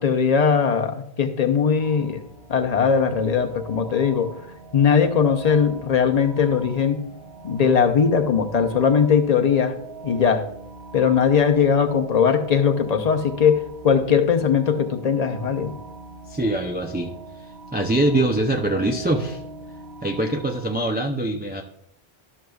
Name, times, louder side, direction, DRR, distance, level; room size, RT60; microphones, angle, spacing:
voice 1, 0.0-2.2 2.5-4.3 4.7-7.0 7.4-9.8 10.0-10.5 10.9-15.7, left 6 dB, 45° left, 6 dB, 0.7 m, -20 dB
sound 1, 1.8-20.8, right 3 dB, 80° right, 2.0 m, -41 dB
voice 2, 16.3-17.1 17.7-19.4 20.0-21.6, right 1 dB, 15° right, 1 dB, 0.3 m, -23 dB
12.5 x 6.3 x 2.3 m, 0.71 s
omnidirectional pair, 1.1 m